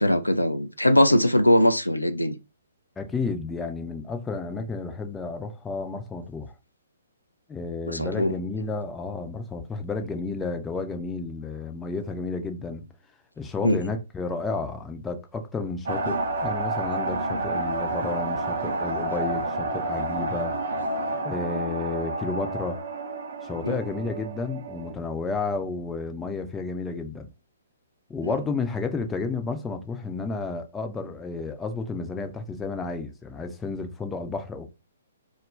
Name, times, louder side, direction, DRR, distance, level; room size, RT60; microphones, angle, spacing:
voice 1, 0.0-2.3 7.9-8.3 13.6-13.8 23.6-23.8 28.2-28.3, left 1 dB, 90° left, 0.3 m, -21 dB
voice 2, 3.0-6.5 7.5-12.9 13.4-20.6 21.2-22.8 23.4-27.3 28.1-34.7, left 4 dB, 10° left, 0.4 m, -31 dB
sound 1, 15.9-24.9, right 2 dB, 60° right, 0.5 m, -30 dB
2.3 x 2.1 x 3.2 m
figure-of-eight pair, 125°, 0 cm